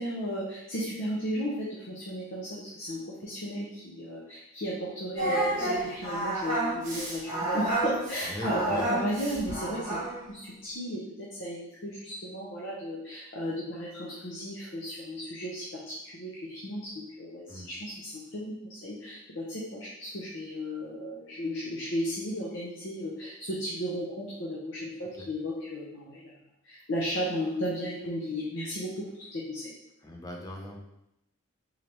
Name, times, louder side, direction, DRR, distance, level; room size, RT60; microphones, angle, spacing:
voice 1, 0.0-10.0 10.3-26.3 26.6-29.7, equal, 55° left, -5 dB, 0.7 m, -35 dB
Singing, 5.2-10.2, right 1 dB, 35° right, 1.4 m, -30 dB
voice 2, 8.2-8.9 17.5-17.7 25.2-25.3 30.0-30.8, equal, 15° left, 0 dB, 0.5 m, -39 dB
3.9 x 3.3 x 2.9 m, 0.86 s
head